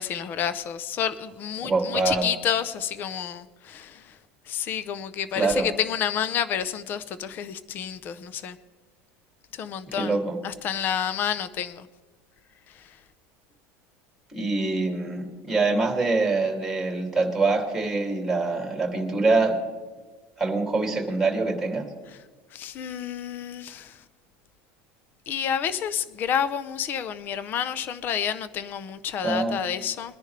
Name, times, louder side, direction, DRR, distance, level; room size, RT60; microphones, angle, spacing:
voice 1, 0.0-4.1 4.5-8.6 9.5-10.2 10.4-11.9 22.5-24.0 25.3-30.2, left 8 dB, 30° left, 0.7 m, -29 dB
voice 2, 1.6-2.3 5.3-5.7 9.9-10.4 14.3-19.6 20.4-21.8 29.2-29.6, right 3 dB, 5° right, 2.6 m, -24 dB
22.5 x 10.5 x 3.3 m
cardioid pair, 165°, 7 cm